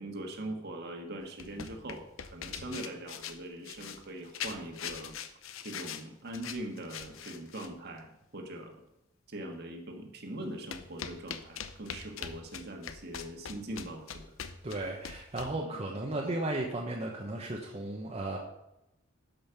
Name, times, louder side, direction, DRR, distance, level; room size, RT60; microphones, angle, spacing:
voice 1, 0.0-5.1 5.6-8.7 9.3-14.2 15.6-15.8, right 1 dB, 55° right, 3 dB, 1.7 m, -42 dB
sound 1, 1.2-7.8 10.7-15.6, left 7 dB, 90° left, 0.7 m, -43 dB
voice 2, 14.6-18.4, right 2 dB, 30° right, -1 dB, 1.0 m, -35 dB
12.0 x 5.5 x 5.8 m, 0.88 s
head